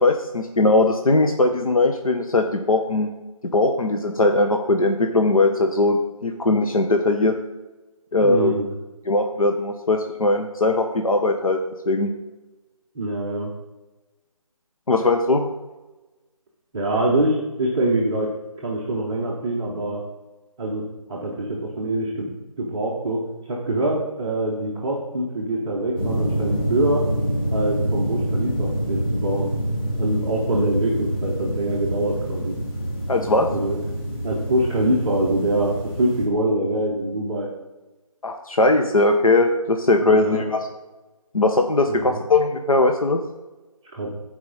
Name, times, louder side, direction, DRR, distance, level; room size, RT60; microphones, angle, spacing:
voice 1, 0.0-3.1 3.5-7.3 8.1-8.5 9.1-11.6 11.9-12.1 14.9-15.5 33.1-33.5 38.2-40.6 41.3-43.2, left 2 dB, 75° left, 5 dB, 0.9 m, -19 dB
voice 2, 8.2-8.7 12.9-13.5 16.7-18.3 18.6-20.0 20.6-20.8 21.1-27.0 27.5-29.5 30.0-32.5 33.5-33.8 34.2-37.5 40.0-40.5 41.9-42.2 43.9-44.1, right 1 dB, 10° right, -7 dB, 0.6 m, -24 dB
sound 1, 26.0-36.3, equal, 40° left, 3.3 m, -26 dB
14.0 x 4.8 x 3.9 m, 1.1 s
figure-of-eight pair, 160°, 18 cm